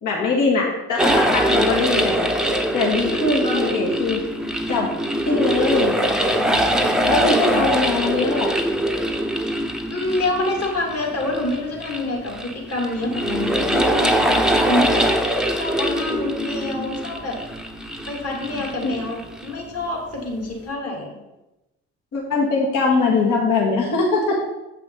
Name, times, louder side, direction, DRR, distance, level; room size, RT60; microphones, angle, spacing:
voice 1, 0.0-2.3 2.7-4.2 4.7-4.9 5.2-5.9 7.1-8.5 18.8-19.0 22.1-24.4, left 3 dB, 55° left, -2 dB, 1.9 m, -21 dB
sound 1, 1.0-19.6, right 1 dB, ahead, 0.8 m, -23 dB
voice 2, 7.1-7.6 9.9-15.1 15.5-17.4 18.1-21.2, left 2 dB, 40° left, -1 dB, 2.7 m, -27 dB
7.6 x 5.6 x 3.9 m, 0.98 s
hypercardioid pair, 60°, 37 cm